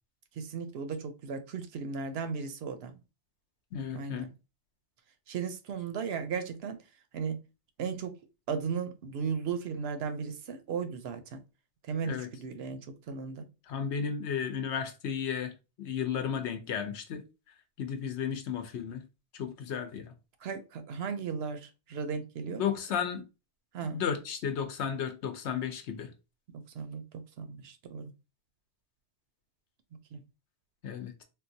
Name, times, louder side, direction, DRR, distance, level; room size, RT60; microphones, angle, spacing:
voice 1, 0.4-3.0 3.9-4.3 5.3-6.8 7.1-7.4 7.8-8.1 8.5-11.4 11.9-13.5 20.4-22.6 23.7-24.0 26.5-28.1 30.1-30.2, right 6 dB, 70° right, 0.8 m, -36 dB
voice 2, 3.7-4.2 12.0-12.3 13.7-15.5 15.8-17.2 17.8-19.0 19.4-20.1 22.6-23.2 23.9-26.1 30.8-31.2, left 7 dB, 75° left, 0.9 m, -33 dB
3.8 x 2.3 x 2.6 m
omnidirectional pair, 1.2 m